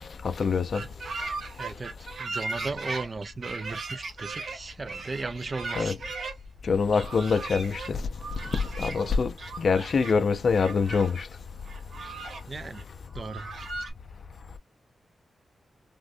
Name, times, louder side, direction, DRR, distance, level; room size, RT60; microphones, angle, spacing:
voice 1, 0.0-0.9 5.8-6.0 6.6-8.1 8.8-11.3, left 5 dB, 60° left, 0.4 m, -25 dB
sound 1, 0.7-6.3 6.9-7.9 8.2-9.1 9.4-10.1 10.6-11.2 11.7-12.4 12.7-12.8 13.1-13.9, right 3 dB, 70° right, 1.0 m, -37 dB
voice 2, 1.6-6.0 12.5-12.8 13.1-13.5, right 3 dB, 35° right, 0.3 m, -36 dB
3.5 x 2.1 x 2.5 m
wide cardioid pair, 130°, 0 cm